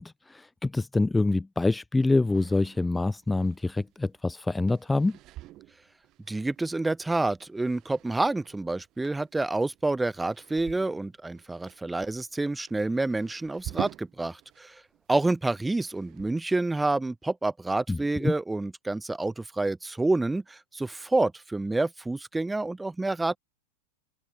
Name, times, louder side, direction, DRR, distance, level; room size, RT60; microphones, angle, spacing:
voice 1, 0.0-5.2 17.9-18.3, left 2 dB, 10° left, 2.2 m, -26 dB
sound 1, 2.3-14.6 14.9-16.5, right 16 dB, 45° right, 6.7 m, -46 dB
voice 2, 6.3-14.8 15.1-23.4, right 2 dB, 10° right, 4.4 m, -28 dB
open air
hypercardioid pair, 95°, 0 cm